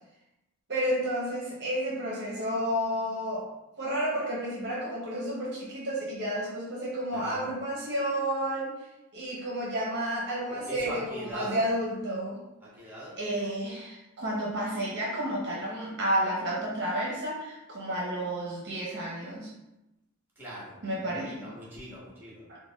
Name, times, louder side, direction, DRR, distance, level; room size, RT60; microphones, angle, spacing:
voice 1, 0.7-3.4 3.8-8.7 9.1-12.4 13.2-19.5 20.8-21.4 22.5-22.6, equal, 50° right, -4 dB, 0.7 m, -31 dB
voice 2, 7.1-7.5 10.5-11.6 12.6-13.2 20.4-22.5, right 1 dB, 10° right, -6 dB, 1.2 m, -41 dB
4.0 x 2.2 x 3.4 m, 0.96 s
head